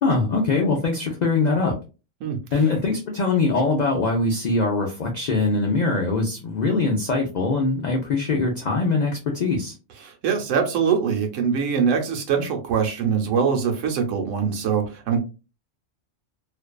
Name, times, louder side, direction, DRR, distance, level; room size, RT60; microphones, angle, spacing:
voice 1, 0.0-1.7 2.5-9.7, left 3 dB, 70° left, 1 dB, 0.4 m, -22 dB
voice 2, 10.0-15.2, right 6 dB, 75° right, 3 dB, 1.0 m, -23 dB
2.5 x 2.2 x 2.2 m, 0.31 s
omnidirectional pair, 1.3 m